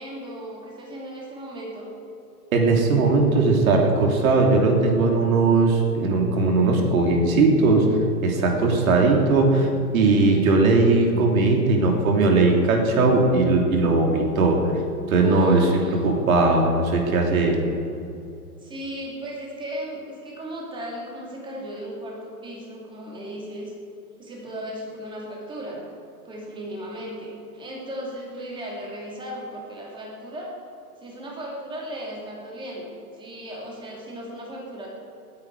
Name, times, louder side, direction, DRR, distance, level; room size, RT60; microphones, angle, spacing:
voice 1, 0.0-1.9 8.9-9.2 15.2-15.9 18.6-23.7 24.2-25.8 26.2-30.5 31.0-34.9, equal, 10° right, -3 dB, 2.7 m, -36 dB
voice 2, 2.5-7.9 8.2-14.6 15.1-17.6, right 3 dB, 60° right, 1 dB, 3.0 m, -19 dB
19.0 x 9.8 x 4.8 m, 2.6 s
hypercardioid pair, 145°, 47 cm